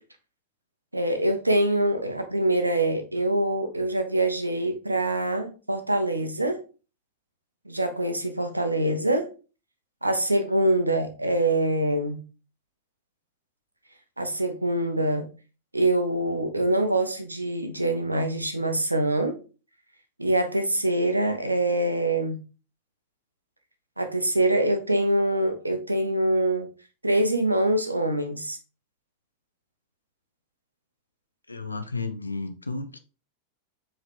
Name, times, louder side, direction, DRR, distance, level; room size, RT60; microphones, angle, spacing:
voice 1, 0.9-6.6 7.7-9.3 10.0-12.2 14.2-15.3 15.7-19.4 20.2-22.4 24.0-26.7 27.0-28.6, right 1 dB, 85° right, 0.7 m, -24 dB
voice 2, 31.5-33.0, left 3 dB, 80° left, 0.4 m, -33 dB
4.8 x 3.1 x 3.1 m
figure-of-eight pair, 90°, 0 cm